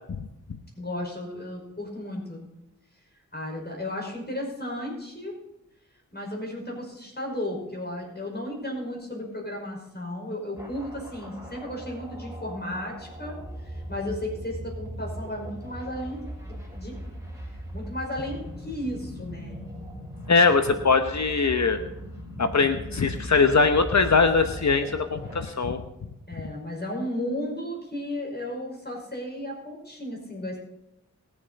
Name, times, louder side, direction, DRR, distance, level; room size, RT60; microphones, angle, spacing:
voice 1, 0.8-2.5 3.3-5.4 6.1-17.2 17.7-19.6 26.3-30.6, left 1 dB, 30° left, 0 dB, 5.4 m, -34 dB
sound 1, 10.6-25.5, equal, 10° right, 5.2 m, -39 dB
voice 2, 20.3-21.8 22.4-25.8, left 4 dB, 60° left, 7 dB, 1.1 m, -21 dB
21.5 x 7.3 x 4.2 m, 0.88 s
cardioid pair, 40°, 32 cm